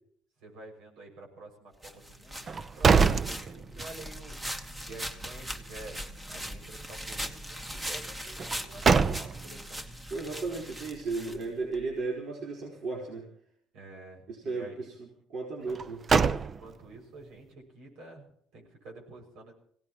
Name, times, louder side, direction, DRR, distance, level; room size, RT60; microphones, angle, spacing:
voice 1, 0.4-4.4 4.8-6.0 6.3-10.0 13.7-14.9 16.4-19.5, right 2 dB, 75° right, 2 dB, 6.5 m, -49 dB
sound 1, 1.8-11.8, equal, 15° right, 1.5 m, -40 dB
sound 2, 2.4-4.1 4.5-4.6 8.4-9.6 15.7-17.0, right 5 dB, 30° right, 0.6 m, -25 dB
voice 2, 10.1-13.3 14.3-16.0, right 3 dB, 55° right, -2 dB, 4.6 m, -35 dB
25.0 x 17.5 x 3.1 m, 0.63 s
cardioid pair, 135°, 0 cm